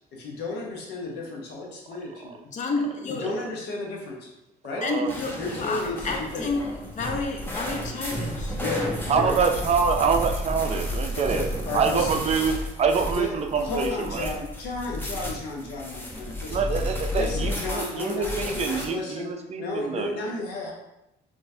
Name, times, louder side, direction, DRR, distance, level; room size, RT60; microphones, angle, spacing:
voice 1, 0.1-2.4 3.1-4.3 4.6-4.8 5.4-6.5 8.5-9.4 11.2-12.2 13.1-13.3 13.6-16.6 17.1-20.7, left 2 dB, 90° left, -1 dB, 1.0 m, -33 dB
voice 2, 2.5-3.3 4.8-8.6, left 3 dB, 50° left, 3 dB, 0.7 m, -30 dB
voice 3, 4.8-5.1 9.1-11.4 11.7-14.3 16.5-20.1, right 5 dB, 40° right, 5 dB, 0.4 m, -25 dB
sound 1, 5.1-18.9, left 1 dB, 15° left, 0.7 m, -32 dB
4.0 x 3.2 x 2.6 m, 0.89 s
cardioid pair, 110°, 17 cm